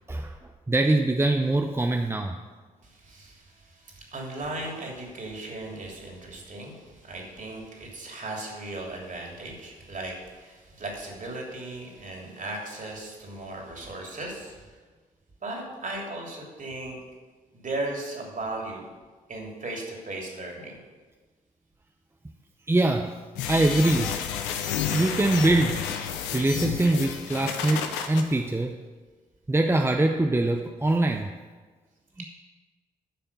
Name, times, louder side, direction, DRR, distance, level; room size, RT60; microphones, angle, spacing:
voice 1, 0.7-2.4 22.7-23.2 23.5-24.2 24.9-25.8 26.3-28.8 29.5-31.3 32.2-32.3, right 2 dB, 15° right, 4 dB, 0.7 m, -23 dB
voice 2, 2.8-14.7 15.4-17.0 17.5-18.9 19.3-20.8 32.2-32.3, right 2 dB, 45° right, 0 dB, 3.1 m, -37 dB
sound 1, 23.4-28.2, left 8 dB, 80° left, 0.8 m, -31 dB
10.5 x 5.7 x 6.9 m, 1.4 s
hypercardioid pair, 45°, 19 cm